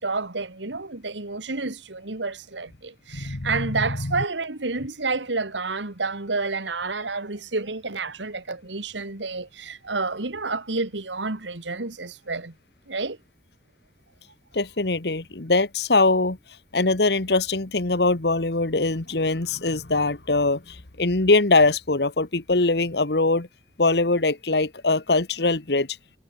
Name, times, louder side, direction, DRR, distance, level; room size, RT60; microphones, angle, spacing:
voice 1, 0.0-12.5 12.9-13.2, right 3 dB, 85° right, 2.1 m, -29 dB
voice 2, 3.2-4.1 14.5-16.4 16.7-23.5 23.8-25.9, left 3 dB, 65° left, 1.5 m, -22 dB
head